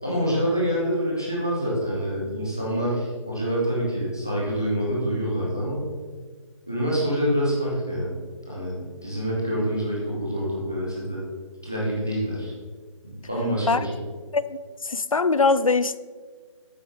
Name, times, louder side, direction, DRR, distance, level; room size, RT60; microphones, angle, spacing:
voice 1, 0.0-5.9 6.7-8.1 8.5-11.2 11.6-12.5 13.0-13.9, equal, 5° left, 0.3 m, -26 dB
voice 2, 14.8-16.0, left 4 dB, 85° left, 0.4 m, -22 dB
8.3 x 5.6 x 3.2 m
figure-of-eight pair, 155°, 17 cm